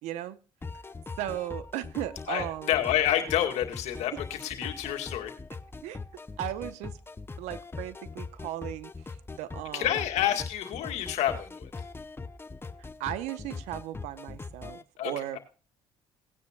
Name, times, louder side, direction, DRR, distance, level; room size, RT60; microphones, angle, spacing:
voice 1, 0.0-0.4 1.2-2.7 5.8-6.0 6.4-7.0 7.4-9.9 12.8-14.8 15.0-15.4, right 13 dB, 80° right, 15 dB, 0.8 m, -36 dB
sound 1, 0.6-14.8, left 4 dB, 20° left, 0.8 m, -41 dB
voice 2, 2.3-5.3 9.7-11.7 15.0-15.4, left 11 dB, 75° left, 6 dB, 2.0 m, -29 dB
18.0 x 9.7 x 2.3 m, 0.34 s
supercardioid pair, 70°, 12 cm